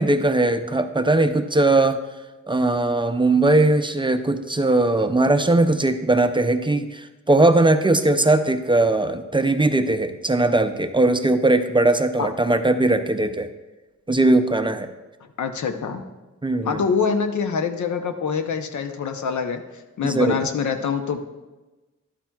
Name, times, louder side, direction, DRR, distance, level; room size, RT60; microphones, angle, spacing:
voice 1, 0.0-2.0 2.5-13.5 14.1-14.9 16.4-16.8 20.0-20.4, right 2 dB, 15° right, 8 dB, 0.4 m, -19 dB
voice 2, 15.4-16.0 16.6-21.2, left 6 dB, 80° left, 7 dB, 0.8 m, -25 dB
11.5 x 8.6 x 2.3 m, 1.1 s
cardioid pair, 85°, 29 cm